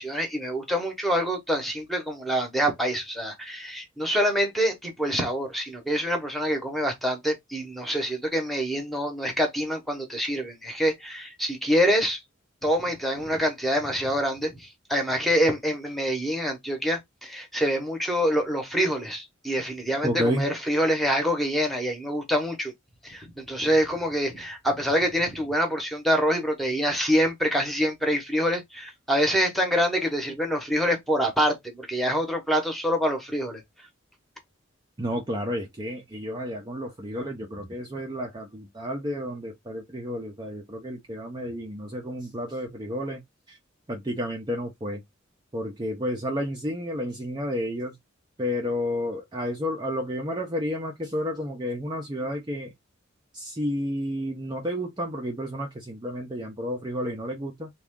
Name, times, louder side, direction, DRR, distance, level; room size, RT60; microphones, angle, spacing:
voice 1, 0.0-12.2 12.6-22.7 23.0-33.6, equal, ahead, 0.9 m, -26 dB
voice 2, 20.0-20.5 35.0-43.2 43.5-43.6 43.9-45.0 45.5-48.0 48.4-52.7 53.3-57.7, equal, 20° right, 0.6 m, -31 dB
3.5 x 2.4 x 3.6 m
head